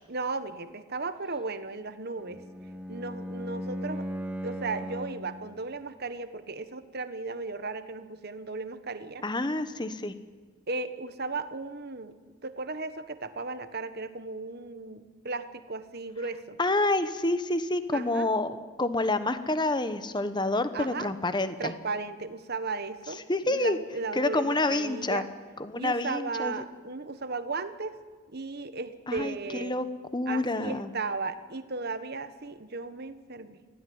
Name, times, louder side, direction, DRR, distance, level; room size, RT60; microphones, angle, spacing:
voice 1, 0.1-2.4 2.9-4.1 4.4-9.2 10.7-12.1 12.4-16.6 17.9-18.3 20.7-21.1 21.6-25.2 25.7-28.0 28.3-29.7 30.3-33.6, right 3 dB, 50° right, 11 dB, 1.3 m, -35 dB
Bowed string instrument, 2.2-5.4, equal, 5° right, 2.3 m, -37 dB
voice 2, 9.2-10.1 16.6-21.7 23.3-23.8 24.1-25.2 25.6-26.5 29.1-29.9 30.1-30.9, left 2 dB, 20° left, 11 dB, 1.1 m, -28 dB
23.5 x 16.5 x 9.5 m, 1.5 s
head